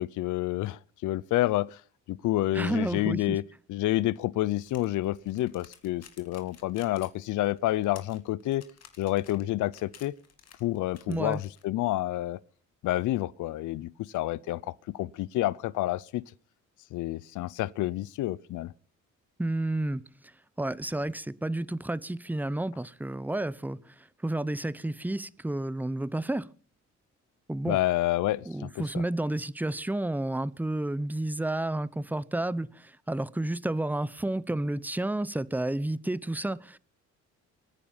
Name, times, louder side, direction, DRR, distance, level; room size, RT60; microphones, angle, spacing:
voice 1, 0.0-1.8 2.1-3.4 3.7-8.6 9.0-10.1 10.6-12.4 12.8-16.2 16.9-18.7 27.7-29.0, left 15 dB, 80° left, 0.6 m, -29 dB
voice 2, 2.5-3.4 11.1-11.4 19.4-20.0 20.6-26.5 27.5-27.8 28.4-36.8, right 1 dB, 5° right, 0.8 m, -31 dB
sound 1, 4.5-11.6, left 7 dB, 55° left, 2.8 m, -54 dB
24.0 x 9.8 x 5.6 m
cardioid pair, 90°, 30 cm